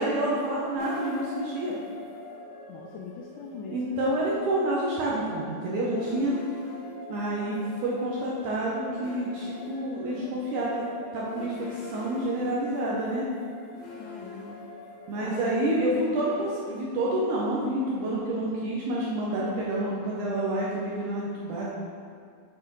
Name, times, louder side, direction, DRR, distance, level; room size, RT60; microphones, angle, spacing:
voice 1, 0.0-1.7 3.7-6.4 7.1-10.8 11.1-13.3 15.1-21.7, right 1 dB, 80° right, -5 dB, 1.9 m, -28 dB
sound 1, 0.8-19.9, left 2 dB, 75° left, 2.3 m, -45 dB
voice 2, 2.7-4.0 6.0-6.4 13.9-14.6 15.2-15.5, left 5 dB, 90° left, 0 dB, 1.8 m, -40 dB
8.9 x 4.2 x 3.0 m, 2.3 s
omnidirectional pair, 4.2 m